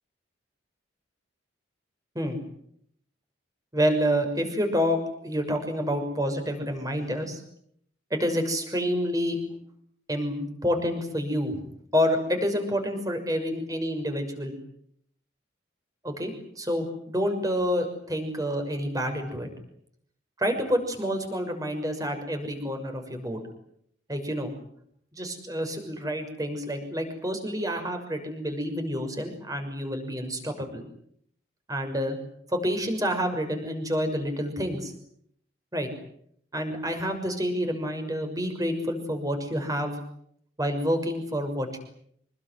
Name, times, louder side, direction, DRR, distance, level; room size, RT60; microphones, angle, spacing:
voice 1, 3.7-7.4 8.1-9.4 10.1-11.6 11.9-14.6 16.0-19.5 20.4-23.4 24.1-24.5 25.1-30.8 31.7-32.2 32.5-34.9 35.7-35.9 36.5-39.9 40.6-41.8, equal, 20° right, 5 dB, 6.4 m, -28 dB
26.5 x 22.0 x 9.6 m, 0.69 s
head